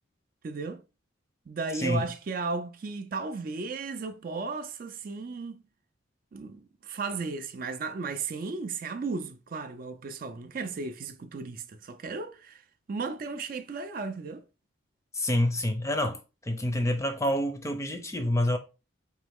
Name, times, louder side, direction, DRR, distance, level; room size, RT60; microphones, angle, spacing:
voice 1, 0.4-0.8 1.5-5.6 6.3-12.6 12.9-14.4, right 4 dB, 45° right, 0.3 m, -35 dB
voice 2, 1.7-2.1 15.1-16.2 16.5-18.6, left 1 dB, 15° left, 0.5 m, -27 dB
4.0 x 3.0 x 3.4 m
head